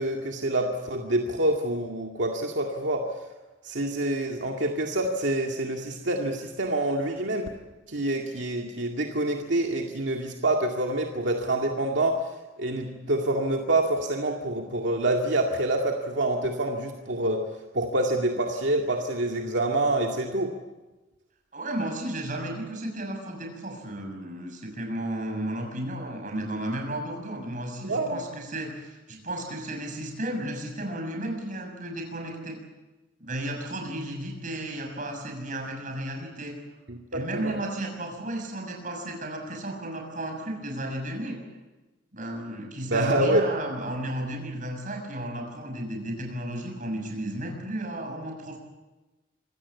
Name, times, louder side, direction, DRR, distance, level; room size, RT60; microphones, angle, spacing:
voice 1, 0.0-3.1 3.6-7.5 7.9-12.2 12.6-17.4 17.7-20.5 27.9-28.2 36.9-37.6 42.9-43.5, right 1 dB, 80° right, 1 dB, 2.1 m, -26 dB
voice 2, 21.5-32.6 33.2-36.6 37.1-41.4 42.1-48.6, right 1 dB, 45° right, 2 dB, 6.6 m, -33 dB
26.0 x 17.0 x 8.5 m, 1.1 s
head